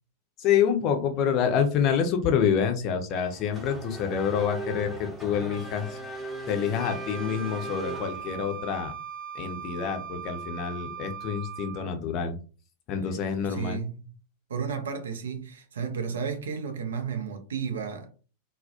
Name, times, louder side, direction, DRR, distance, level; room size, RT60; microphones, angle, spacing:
voice 1, 0.4-6.0 6.5-8.9 9.3-12.3 12.9-13.8, left 7 dB, 40° left, 0.5 m, -27 dB
Race car auto racing / Accelerating revving vroom, 3.1-8.6, right 1 dB, 5° right, 0.7 m, -38 dB
Wind instrument woodwind instrument, 6.8-11.9, right 8 dB, 35° right, 0.9 m, -39 dB
voice 2, 13.3-14.1 14.5-18.1, right 6 dB, 65° right, 0.5 m, -33 dB
2.3 x 2.0 x 2.7 m
figure-of-eight pair, 90°, 0 cm